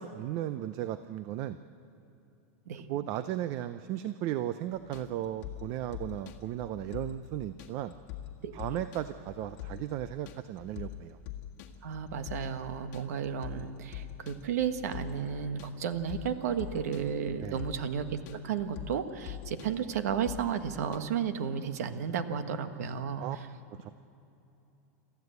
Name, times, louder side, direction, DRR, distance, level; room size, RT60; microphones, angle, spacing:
voice 1, 0.0-1.6 2.9-7.9 8.5-11.2 17.4-17.6 23.2-23.4 23.8-23.9, right 12 dB, 40° right, 12 dB, 0.5 m, -35 dB
sound 1, 4.7-21.0, left 11 dB, 45° left, 1.8 m, -44 dB
voice 2, 11.8-23.5, right 7 dB, 80° right, 9 dB, 1.5 m, -33 dB
27.5 x 14.0 x 8.0 m, 2.9 s
supercardioid pair, 160°, 8 cm